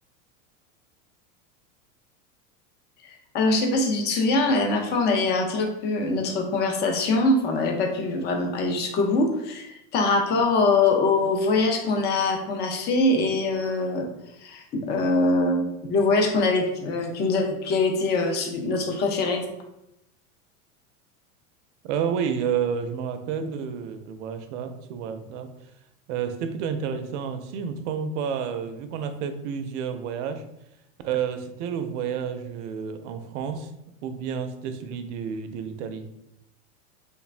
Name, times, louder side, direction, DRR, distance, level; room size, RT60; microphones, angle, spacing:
voice 1, 3.0-14.1 14.4-19.4, left 3 dB, 25° left, 3 dB, 0.4 m, -23 dB
voice 2, 21.8-25.5 26.1-30.4 31.0-33.7 34.0-36.1, right 7 dB, 60° right, 8 dB, 0.5 m, -30 dB
3.3 x 2.0 x 2.4 m, 0.84 s
hypercardioid pair, 110°, 42 cm